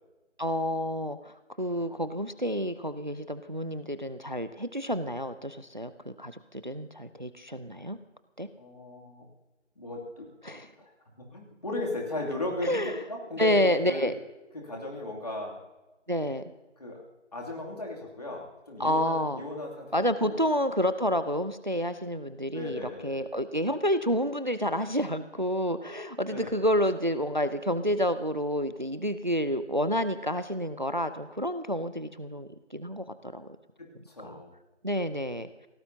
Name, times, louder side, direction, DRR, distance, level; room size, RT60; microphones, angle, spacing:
voice 1, 0.4-8.0 8.4-8.5 10.4-10.7 12.6-13.0 13.4-14.1 16.1-16.4 18.8-19.4 19.9-33.1 33.3-33.5 34.2-34.4 34.8-35.5, equal, 40° right, 13 dB, 0.6 m, -29 dB
voice 2, 8.6-9.3 9.8-10.3 10.8-10.9 11.2-14.1 14.5-15.6 16.8-17.0 17.3-20.4 22.5-23.2 26.3-26.6 33.8-34.5, left 2 dB, 35° left, -2 dB, 2.7 m, -36 dB
24.0 x 17.5 x 2.8 m, 1.1 s
figure-of-eight pair, 175°, 36 cm